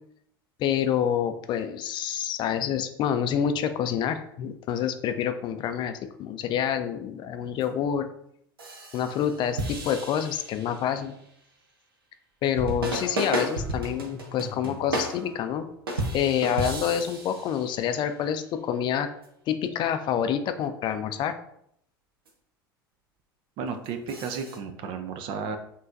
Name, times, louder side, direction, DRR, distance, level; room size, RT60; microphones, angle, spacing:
voice 1, 0.6-8.1 8.9-11.1 12.4-15.7 16.1-19.1 19.5-21.3, left 9 dB, 40° left, 9 dB, 0.4 m, -27 dB
sound 1, 7.6-7.7 8.6-11.1 12.6-18.0 19.2-19.3 22.3-22.4 23.8-24.6, right 1 dB, 80° right, 0.9 m, -33 dB
voice 2, 23.6-25.6, right 5 dB, 50° right, 7 dB, 0.6 m, -33 dB
5.6 x 3.1 x 2.5 m, 0.71 s
figure-of-eight pair, 80°, 12 cm